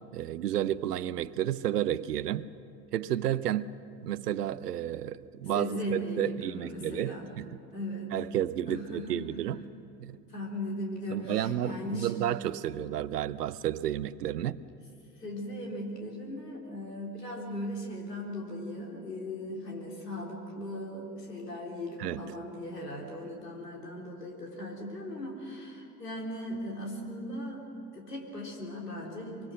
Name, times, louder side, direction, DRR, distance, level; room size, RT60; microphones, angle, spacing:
voice 1, 0.1-2.5 2.9-3.7 4.0-7.6 8.1-9.6 10.0-10.2 11.1-14.6 22.0-22.2, right 11 dB, 80° right, 17 dB, 0.7 m, -31 dB
voice 2, 5.5-7.3 7.7-8.2 8.6-9.3 10.3-12.1 15.2-27.7 27.9-29.5, left 1 dB, 85° left, -1 dB, 4.0 m, -38 dB
24.5 x 24.0 x 6.5 m, 2.5 s
figure-of-eight pair, 70°, 47 cm